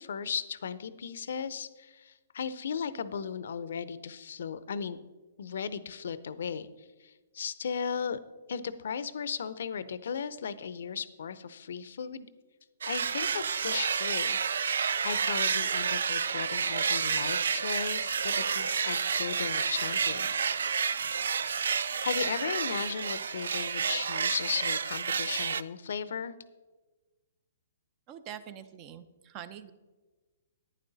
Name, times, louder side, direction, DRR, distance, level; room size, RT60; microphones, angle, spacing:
voice 1, 0.0-5.0 5.4-8.2 8.5-12.3 12.9-14.4 15.0-20.3 21.5-26.3, left 6 dB, 70° left, 15 dB, 0.6 m, -36 dB
sound 1, 12.8-25.6, right 6 dB, 80° right, 0.3 m, -30 dB
voice 2, 28.1-29.7, right 9 dB, 30° right, 13 dB, 0.6 m, -44 dB
11.0 x 9.4 x 4.0 m, 1.3 s
hypercardioid pair, 140°, 0 cm